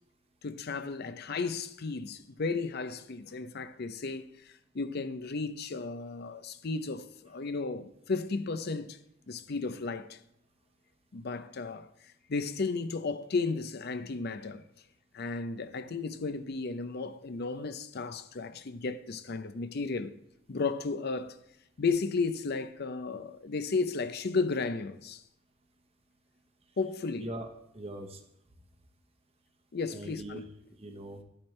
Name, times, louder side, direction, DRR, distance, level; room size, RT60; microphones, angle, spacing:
voice 1, 0.4-9.0 9.3-10.2 11.1-14.6 15.1-20.1 20.5-21.4 21.8-25.2 26.8-27.3 29.7-30.4, left 4 dB, 55° left, 0.6 m, -34 dB
voice 2, 27.7-28.2 29.9-31.2, right 1 dB, 30° right, 0.9 m, -41 dB
11.5 x 8.8 x 3.2 m
head